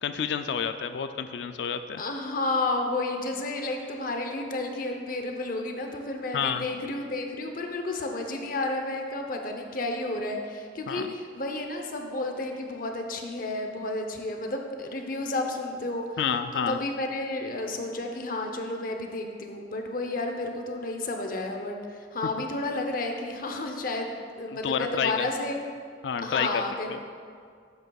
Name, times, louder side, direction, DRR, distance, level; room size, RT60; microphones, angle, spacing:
voice 1, 0.0-2.0 6.3-6.7 10.9-11.1 16.2-16.8 24.6-25.3 26.0-26.6 26.9-27.0, left 7 dB, 70° left, 9 dB, 0.4 m, -29 dB
voice 2, 2.0-16.0 16.5-24.1 24.4-25.6 26.2-27.0, left 2 dB, 50° left, 3 dB, 0.8 m, -31 dB
12.5 x 8.0 x 2.3 m, 2.1 s
head